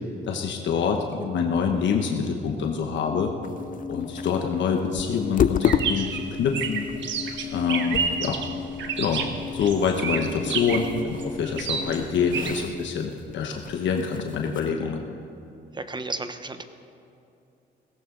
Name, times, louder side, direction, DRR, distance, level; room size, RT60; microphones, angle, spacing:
voice 1, 0.3-3.3 3.9-6.9 7.5-8.4 9.0-9.3 9.5-15.0, left 6 dB, 70° left, 2 dB, 1.1 m, -26 dB
sound 1, 3.0-12.4, left 5 dB, 85° left, 2.0 m, -37 dB
sound 2, 3.4-14.7, left 8 dB, 45° left, 0.5 m, -32 dB
sound 3, 5.6-12.6, right 6 dB, 70° right, 1.3 m, -30 dB
voice 2, 15.7-16.6, right 3 dB, 20° right, 9 dB, 0.9 m, -33 dB
17.0 x 15.0 x 3.8 m, 2.7 s
cardioid pair, 90°, 20 cm